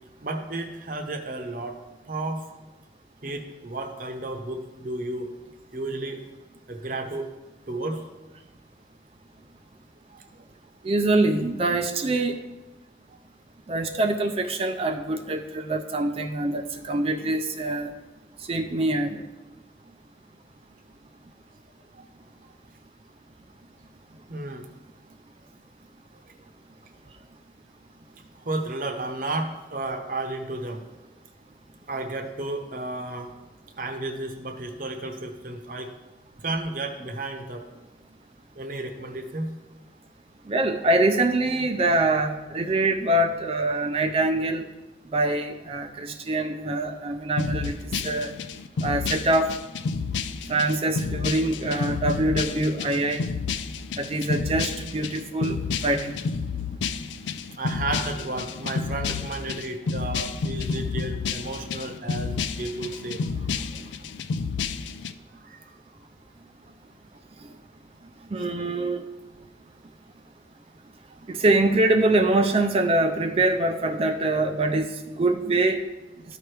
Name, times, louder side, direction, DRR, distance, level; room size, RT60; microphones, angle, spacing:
voice 1, 0.2-1.8 2.1-2.4 3.2-5.3 5.7-6.2 6.7-7.3 7.7-8.0 10.1-10.2 13.1-13.2 21.9-22.0 24.3-24.7 28.4-30.8 31.9-33.3 33.8-35.9 36.4-37.6 38.6-39.5 57.6-63.2 65.3-65.7 68.4-68.5 71.1-71.2, right 2 dB, 50° right, 5 dB, 0.8 m, -32 dB
voice 2, 10.8-12.4 13.7-17.9 18.5-19.2 40.5-44.7 45.1-48.3 48.8-49.5 50.5-53.3 54.0-56.2 68.3-69.0 71.3-75.8, right 2 dB, 35° right, 6 dB, 0.4 m, -24 dB
sound 1, 47.4-65.1, left 5 dB, 85° left, 0.4 m, -30 dB
13.5 x 4.6 x 3.3 m, 1.1 s
head